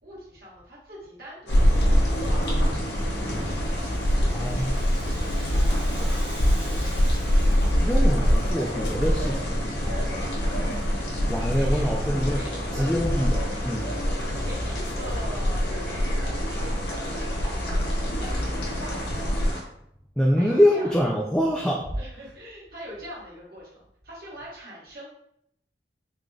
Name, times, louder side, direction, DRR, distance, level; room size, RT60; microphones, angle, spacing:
voice 1, 0.0-2.8 3.0-3.4 3.8-6.2 6.6-7.1 10.1-10.3 11.4-11.9 12.2-12.9 13.4-16.7 17.1-19.0 20.4-20.9 21.9-25.1, equal, 55° right, -5 dB, 1.3 m, -43 dB
sound 1, 1.5-19.5, equal, 85° left, 0.7 m, -25 dB
sound 2, 1.5-19.6, left 1 dB, 65° left, 1.1 m, -36 dB
Rattle (instrument), 3.5-9.0, right 1 dB, 35° right, 1.1 m, -46 dB
voice 2, 4.3-4.7 7.8-9.6 11.3-12.4 12.7-13.8 20.2-21.9, equal, 5° left, -2 dB, 0.3 m, -24 dB
3.8 x 3.2 x 2.3 m, 0.73 s
head